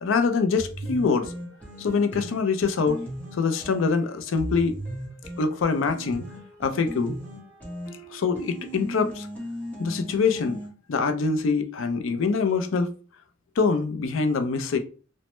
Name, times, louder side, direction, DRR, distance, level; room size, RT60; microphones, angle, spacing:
voice 1, 0.0-1.3 1.8-3.0 3.3-4.8 5.4-6.2 6.6-7.2 8.1-9.3 9.8-10.6 10.9-12.9 13.6-14.8, left 4 dB, 85° left, 0.4 m, -24 dB
sound 1, 0.6-10.7, equal, 10° left, 1.0 m, -38 dB
3.1 x 2.1 x 3.0 m
head